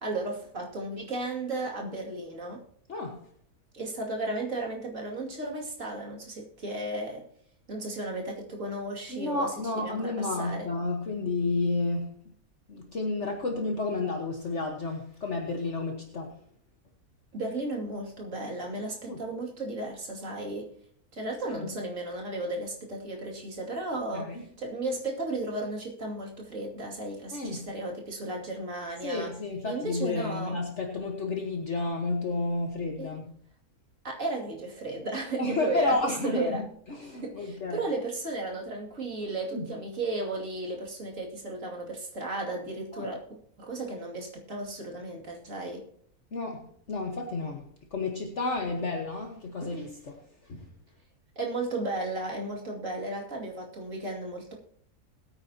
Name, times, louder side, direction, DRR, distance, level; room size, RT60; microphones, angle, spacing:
voice 1, 0.0-2.6 3.7-7.2 7.7-10.7 17.3-20.7 21.1-24.3 24.6-29.3 29.6-30.6 33.0-33.1 34.0-36.6 37.1-43.2 43.6-45.8 51.4-54.5, right 2 dB, 55° right, -1 dB, 2.9 m, -34 dB
voice 2, 2.9-3.2 9.1-12.2 12.7-16.4 19.1-19.2 21.5-21.7 24.1-24.4 27.3-27.7 29.0-33.3 35.4-37.8 39.5-39.7 42.9-43.1 46.3-47.6 47.9-50.7, left 3 dB, 50° left, 1 dB, 1.6 m, -31 dB
21.5 x 8.8 x 2.9 m, 0.65 s
omnidirectional pair, 1.6 m